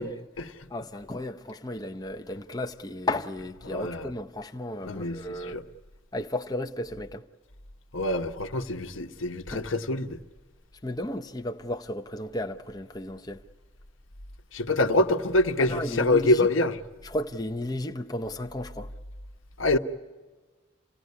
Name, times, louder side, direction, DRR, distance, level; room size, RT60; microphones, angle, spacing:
voice 1, 0.0-5.6 6.1-7.2 9.5-9.7 10.8-13.4 15.6-16.5 17.0-18.9, left 1 dB, 20° left, 0.7 m, -34 dB
voice 2, 3.7-4.0 4.8-5.6 7.9-10.2 14.5-16.8 19.6-19.8, left 2 dB, 85° left, 1.1 m, -25 dB
28.0 x 17.5 x 9.6 m
head